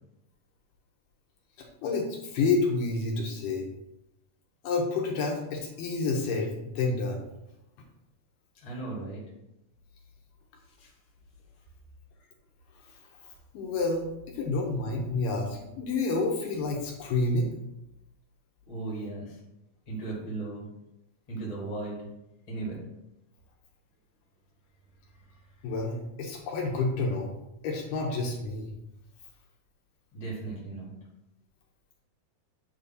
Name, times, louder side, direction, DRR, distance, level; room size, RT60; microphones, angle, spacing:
voice 1, 1.6-3.7 4.6-7.2 13.2-13.3 13.5-17.5 25.6-27.3 27.6-28.7, left 3 dB, 75° left, 0 dB, 2.3 m, -29 dB
voice 2, 8.5-9.2 10.7-10.9 18.7-19.4 19.9-20.7 21.3-22.1 22.5-22.8 30.1-30.9, right 3 dB, 15° left, -3 dB, 1.1 m, -36 dB
8.9 x 3.0 x 4.0 m, 0.89 s
omnidirectional pair, 4.2 m